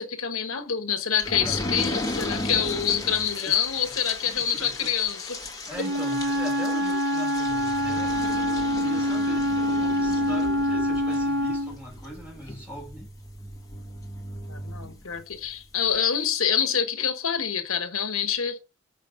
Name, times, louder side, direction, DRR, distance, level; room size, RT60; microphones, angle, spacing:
voice 1, 0.0-5.4 14.5-18.6, left 8 dB, 85° left, 1.2 m, -26 dB
sound 1, 1.2-15.5 15.9-16.0 16.3-16.4, left 1 dB, 15° left, 1.5 m, -36 dB
voice 2, 4.2-4.9 5.7-8.2 8.8-13.2, equal, 5° right, 5.1 m, -40 dB
Wind instrument woodwind instrument, 5.7-11.8, equal, 50° right, 0.8 m, -25 dB
6.3 x 5.2 x 6.8 m
head